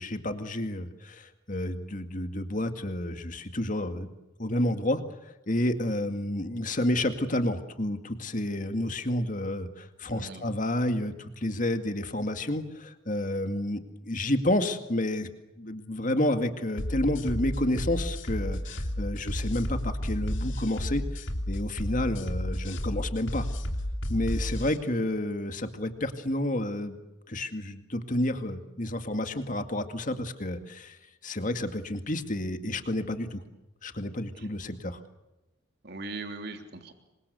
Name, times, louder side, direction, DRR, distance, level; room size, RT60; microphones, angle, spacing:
voice 1, 0.0-4.1 4.4-15.3 15.6-23.5 24.1-27.0 27.3-31.0 31.2-33.4 33.8-35.0, left 1 dB, 40° left, 8 dB, 2.1 m, -30 dB
voice 2, 10.1-10.5 34.3-34.5 35.8-36.9, right 3 dB, 55° right, 5 dB, 3.4 m, -40 dB
sound 1, 16.8-24.8, equal, 70° left, 3.1 m, -32 dB
27.5 x 25.0 x 7.0 m, 1.0 s
head